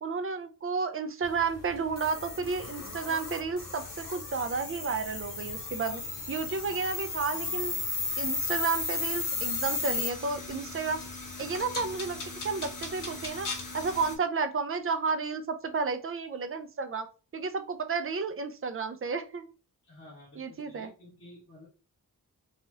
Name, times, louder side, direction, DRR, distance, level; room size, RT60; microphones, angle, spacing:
voice 1, 0.0-6.0 6.3-7.8 8.2-11.0 11.4-12.2 12.4-13.5 13.7-17.1 17.3-19.5 20.4-20.9, right 4 dB, 40° right, 8 dB, 0.4 m, -32 dB
sound 1, 1.2-14.2, left 3 dB, 65° left, 0.8 m, -35 dB
voice 2, 5.9-6.3 19.9-21.7, left 1 dB, 35° left, -7 dB, 1.5 m, -52 dB
3.0 x 2.4 x 2.7 m, 0.34 s
wide cardioid pair, 80°, 35 cm